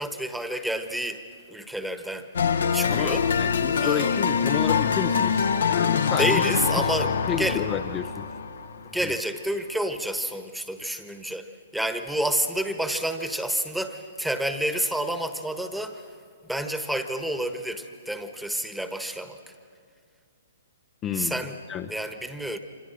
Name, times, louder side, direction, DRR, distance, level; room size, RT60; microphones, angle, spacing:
voice 1, 0.0-2.3 2.7-3.3 3.8-4.2 6.2-7.7 8.8-16.0 16.4-19.5 21.1-21.6 21.9-22.6, right 1 dB, ahead, 8 dB, 1.3 m, -29 dB
sound 1, 2.3-9.2, left 6 dB, 60° left, 1.1 m, -24 dB
voice 2, 2.9-6.4 6.8-6.9 7.3-8.3 9.0-9.1 21.0-21.9, left 9 dB, 20° left, 7 dB, 0.7 m, -31 dB
26.5 x 26.5 x 6.4 m, 2.3 s
figure-of-eight pair, 120°, 0 cm